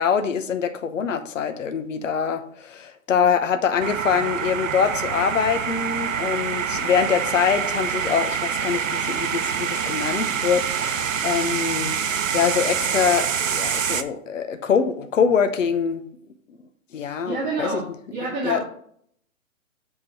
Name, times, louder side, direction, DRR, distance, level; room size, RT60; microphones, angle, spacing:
voice 1, 0.0-16.0 16.9-17.8 18.4-18.6, left 7 dB, 65° left, 8 dB, 0.9 m, -24 dB
sound 1, 3.8-14.0, right 7 dB, 70° right, 0.8 m, -26 dB
voice 2, 17.3-18.6, right 3 dB, 25° right, -8 dB, 2.2 m, -28 dB
7.9 x 3.9 x 4.4 m, 0.63 s
figure-of-eight pair, 130°, 41 cm